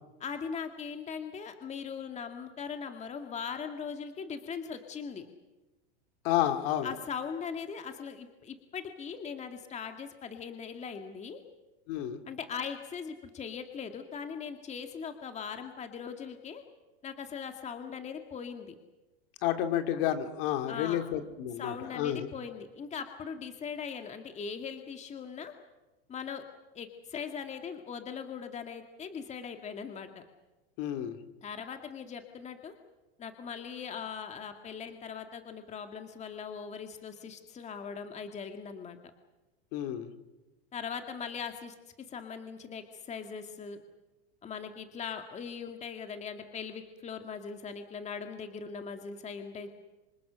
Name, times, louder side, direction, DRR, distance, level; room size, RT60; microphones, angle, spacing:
voice 1, 0.2-5.3 6.8-11.4 12.3-16.6 17.0-18.7 20.7-21.1 21.6-25.5 26.1-26.4 26.7-30.2 31.4-32.8 33.2-39.0 40.7-41.7 42.1-43.8 44.4-49.7, left 6 dB, 20° left, 6 dB, 2.0 m, -40 dB
voice 2, 6.2-6.9 11.9-12.2 19.4-22.3 30.8-31.2 39.7-40.1, left 11 dB, 55° left, 7 dB, 2.9 m, -30 dB
26.0 x 26.0 x 6.4 m, 1.0 s
supercardioid pair, 130°, 32 cm